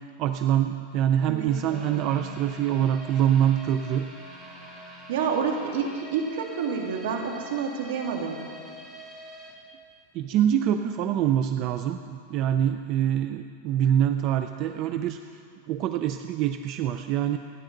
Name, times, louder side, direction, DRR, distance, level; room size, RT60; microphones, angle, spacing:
voice 1, 0.2-4.1 10.1-15.2 15.7-17.4, right 10 dB, 40° right, 8 dB, 0.5 m, -25 dB
voice 2, 1.3-2.2 5.1-8.4, right 6 dB, 75° right, 2 dB, 2.3 m, -29 dB
sound 1, 1.5-10.5 10.8-10.9 11.4-11.5, equal, 20° right, 3.1 m, -45 dB
27.0 x 10.0 x 3.9 m, 2.3 s
supercardioid pair, 145°, 0 cm